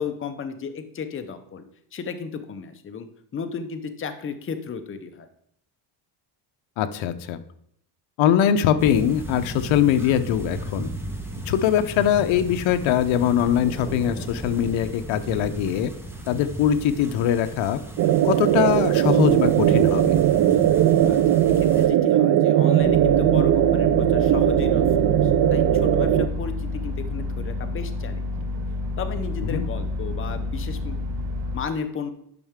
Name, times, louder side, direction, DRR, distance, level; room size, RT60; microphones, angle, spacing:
voice 1, 0.0-1.6 1.9-5.3 21.1-28.3 29.0-32.1, left 6 dB, 25° left, 8 dB, 0.7 m, -34 dB
voice 2, 6.8-7.4 8.2-10.9 11.5-15.9 16.3-17.8 18.2-20.1 29.5-29.6, left 10 dB, 70° left, 10 dB, 0.8 m, -22 dB
sound 1, 8.8-21.9, right 1 dB, 5° right, 1.2 m, -35 dB
sound 2, 18.0-26.3, right 11 dB, 45° right, 0.4 m, -19 dB
sound 3, 22.8-31.6, left 2 dB, 80° right, 2.6 m, -29 dB
10.5 x 5.6 x 3.6 m, 0.70 s
cardioid pair, 125°, 49 cm